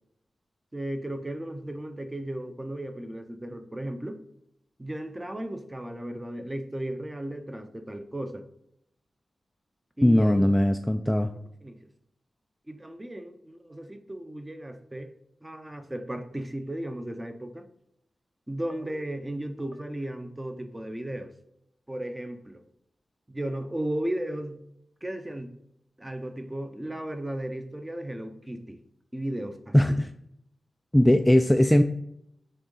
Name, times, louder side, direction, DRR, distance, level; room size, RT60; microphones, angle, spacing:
voice 1, 0.7-4.2 4.8-8.4 10.0-10.5 11.6-11.9 12.7-15.1 15.4-17.7 18.5-21.3 21.9-22.6 23.3-24.6 25.0-25.6 26.0-28.8 29.1-29.7, right 1 dB, 15° right, 6 dB, 0.7 m, -35 dB
voice 2, 10.0-11.3 29.7-30.1 30.9-31.8, left 1 dB, 10° left, 7 dB, 0.3 m, -20 dB
6.6 x 3.6 x 3.9 m, 0.76 s
wide cardioid pair, 95°, 0 cm